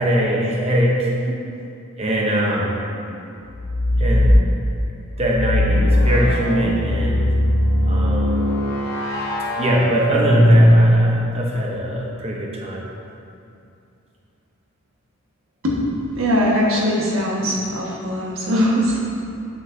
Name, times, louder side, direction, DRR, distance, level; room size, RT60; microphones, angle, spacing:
voice 1, 0.0-1.1 2.0-2.8 4.0-4.4 5.2-7.3 7.8-8.5 9.6-12.8, equal, 30° right, -3 dB, 0.8 m, -22 dB
sound 1, 3.5-4.4 5.3-11.3, equal, 45° left, 1.0 m, -18 dB
voice 2, 16.1-19.0, equal, 70° right, -4 dB, 1.5 m, -21 dB
8.9 x 7.7 x 2.7 m, 2.7 s
head